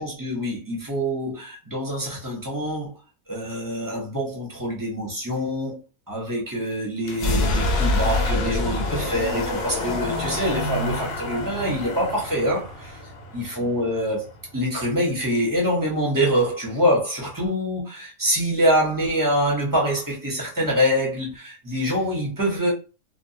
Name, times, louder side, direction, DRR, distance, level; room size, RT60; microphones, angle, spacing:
voice 1, 0.0-2.9 3.3-5.8 6.1-13.0 13.3-22.7, equal, 20° right, 0.6 m, -25 dB
sound 1, 7.0-14.8, left 2 dB, 60° left, 0.7 m, -27 dB
2.3 x 2.1 x 2.7 m
omnidirectional pair, 1.5 m